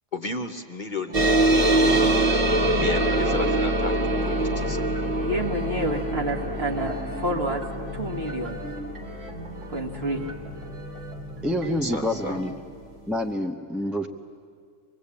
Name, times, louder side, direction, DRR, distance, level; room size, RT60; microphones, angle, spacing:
voice 1, 0.1-1.2 1.6-2.0 2.7-4.9 11.8-12.4, left 3 dB, 40° left, 4 dB, 1.0 m, -33 dB
sound 1, 1.1-12.1, right 1 dB, 30° right, 1.3 m, -25 dB
sound 2, 1.1-12.5, right 1 dB, 70° right, 2.5 m, -39 dB
voice 2, 5.2-7.6 7.9-8.6 9.7-10.2, right 1 dB, 50° right, 1 dB, 2.3 m, -29 dB
voice 3, 11.4-12.5 13.1-14.1, left 1 dB, ahead, 4 dB, 0.7 m, -27 dB
25.0 x 21.0 x 8.6 m, 2.2 s
omnidirectional pair, 1.3 m